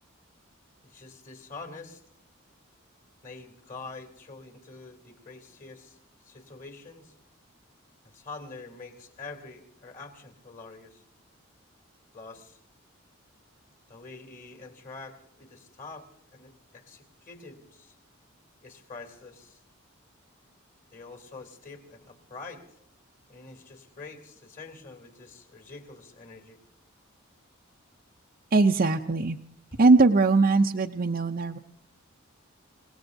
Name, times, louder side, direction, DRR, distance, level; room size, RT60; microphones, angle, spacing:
voice 1, 0.8-2.0 3.2-6.0 6.2-7.1 8.0-11.0 12.1-12.6 13.9-17.9 18.6-19.6 20.9-22.8 23.3-26.6 29.7-29.8, left 3 dB, 40° left, 5 dB, 3.1 m, -45 dB
voice 2, 28.5-29.4 29.8-31.6, right 3 dB, 45° right, 2 dB, 0.6 m, -21 dB
29.0 x 18.5 x 2.7 m, 0.73 s
head